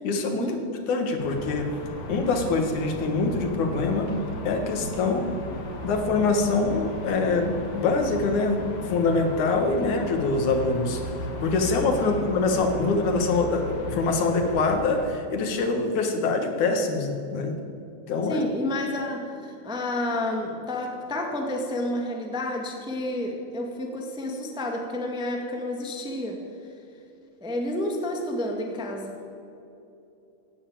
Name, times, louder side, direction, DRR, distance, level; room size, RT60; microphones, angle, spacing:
voice 1, 0.0-1.7 2.1-4.1 4.4-5.3 5.8-17.6 18.1-18.5, left 3 dB, 65° left, 5 dB, 3.0 m, -24 dB
sound 1, 1.2-15.1, left 1 dB, 80° left, 3.9 m, -36 dB
voice 2, 18.2-26.4 27.4-29.2, left 1 dB, 5° right, 2 dB, 0.7 m, -30 dB
16.5 x 9.7 x 8.7 m, 2.8 s
omnidirectional pair, 4.0 m